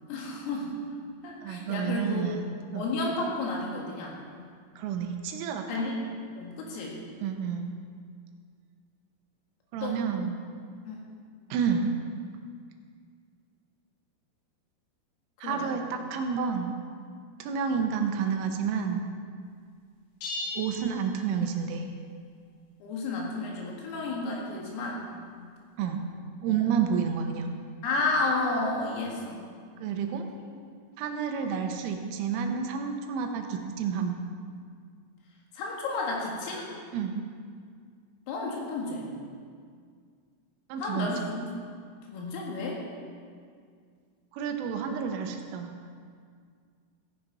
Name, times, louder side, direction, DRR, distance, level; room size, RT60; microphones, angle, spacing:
voice 1, 0.1-1.0 1.2-2.3 2.8-4.2 5.7-6.9 9.8-10.0 10.9-11.0 15.4-15.7 22.8-25.1 26.5-26.6 27.8-29.5 35.5-36.7 38.3-39.1 40.8-41.5 42.1-42.8, left 3 dB, 85° left, -2 dB, 4.5 m, -32 dB
voice 2, 1.4-2.9 4.8-5.9 7.2-7.7 9.7-10.4 11.5-11.9 15.4-16.7 17.4-19.0 20.5-21.9 25.8-26.0 26.4-27.5 29.8-30.3 31.0-34.2 36.9-37.2 40.7-41.1 44.3-45.7, right 6 dB, 90° right, 5 dB, 3.3 m, -30 dB
sound 1, 20.2-21.8, left 2 dB, 60° left, 4.1 m, -38 dB
14.5 x 9.9 x 4.1 m, 2.1 s
omnidirectional pair, 5.8 m